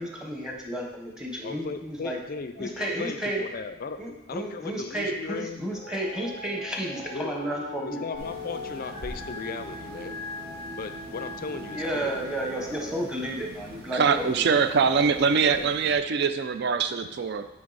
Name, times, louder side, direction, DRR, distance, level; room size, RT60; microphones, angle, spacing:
voice 1, 0.0-2.2 2.6-3.4 4.0-8.0 11.7-14.7, right 1 dB, 5° right, 0 dB, 0.8 m, -32 dB
voice 2, 1.4-4.0 4.3-5.7 7.1-7.3 7.8-10.2 10.7-12.2 15.4-15.7, left 4 dB, 45° left, 10 dB, 0.4 m, -37 dB
sound 1, 5.7-13.0, left 2 dB, 35° right, 1.8 m, -40 dB
sound 2, 8.1-16.0, right 1 dB, 85° right, 1.3 m, -45 dB
voice 3, 13.9-17.5, right 5 dB, 55° right, 10 dB, 0.4 m, -23 dB
8.7 x 3.5 x 4.0 m, 0.92 s
head